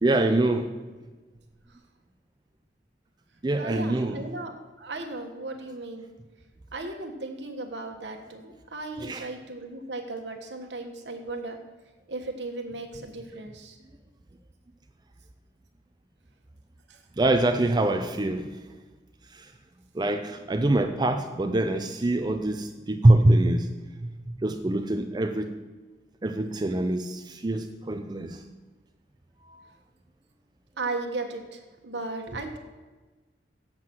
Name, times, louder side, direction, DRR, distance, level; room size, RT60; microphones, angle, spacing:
voice 1, 0.0-0.8 3.4-4.2 9.0-9.3 17.2-18.6 19.3-19.5 19.9-23.7 24.0-25.6 26.2-28.4 29.5-29.6, right 1 dB, 25° right, 6 dB, 0.5 m, -24 dB
voice 2, 3.6-6.1 6.7-11.6 12.1-13.8 16.9-17.0 30.8-32.6, right 2 dB, 75° right, 4 dB, 1.3 m, -36 dB
8.0 x 7.5 x 6.0 m, 1.3 s
head